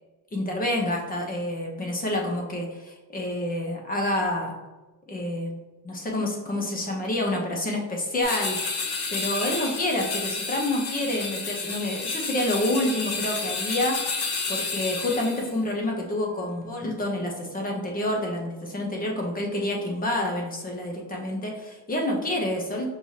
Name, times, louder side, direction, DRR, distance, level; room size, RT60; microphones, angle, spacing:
voice 1, 0.3-4.5 5.1-5.5 5.8-22.9, left 1 dB, 25° left, 0 dB, 0.8 m, -28 dB
sound 1, 8.2-15.5, left 4 dB, 85° left, 1.0 m, -31 dB
5.3 x 3.1 x 2.8 m, 1.2 s
cardioid pair, 150°, 37 cm